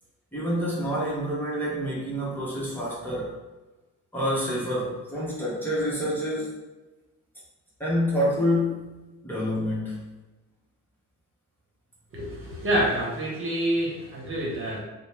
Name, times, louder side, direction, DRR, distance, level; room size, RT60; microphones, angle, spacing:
voice 1, 0.3-3.4 4.1-6.6 7.8-10.1, equal, 5° left, -8 dB, 0.9 m, -28 dB
voice 2, 12.1-14.8, equal, 45° right, -3 dB, 1.1 m, -27 dB
2.6 x 2.1 x 3.2 m, 1.1 s
cardioid pair, 90°, 30 cm